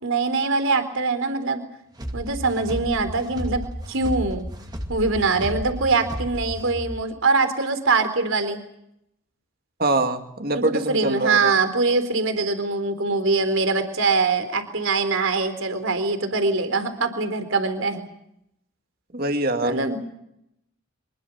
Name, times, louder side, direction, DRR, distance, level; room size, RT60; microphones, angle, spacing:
voice 1, 0.0-1.6 2.1-3.6 3.9-4.4 4.9-8.6 10.5-18.0 19.6-20.0, right 3 dB, 70° right, 9 dB, 3.9 m, -23 dB
sound 1, 2.0-7.0, equal, 20° right, 2.2 m, -33 dB
voice 2, 9.8-11.5 19.1-19.8, right 2 dB, 45° right, 6 dB, 2.4 m, -24 dB
26.0 x 21.5 x 7.2 m, 0.78 s
head